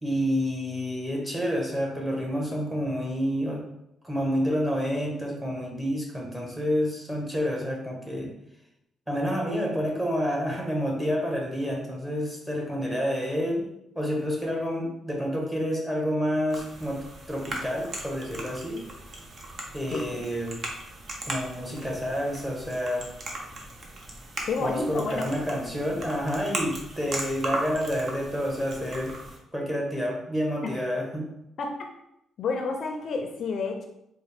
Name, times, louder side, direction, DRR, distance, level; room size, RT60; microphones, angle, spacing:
voice 1, 0.0-3.6 4.0-8.3 9.1-13.6 13.9-18.8 19.7-20.6 21.3-23.1 24.6-29.2 29.5-31.3, equal, 10° right, -1 dB, 1.1 m, -29 dB
sound 1, 16.5-29.4, right 2 dB, 50° right, 0.8 m, -38 dB
voice 2, 19.9-20.2 24.4-25.3 30.6-30.7 31.6-31.8 32.4-33.8, left 4 dB, 60° left, 4 dB, 0.5 m, -30 dB
4.1 x 2.1 x 3.4 m, 0.81 s
cardioid pair, 90°, 0 cm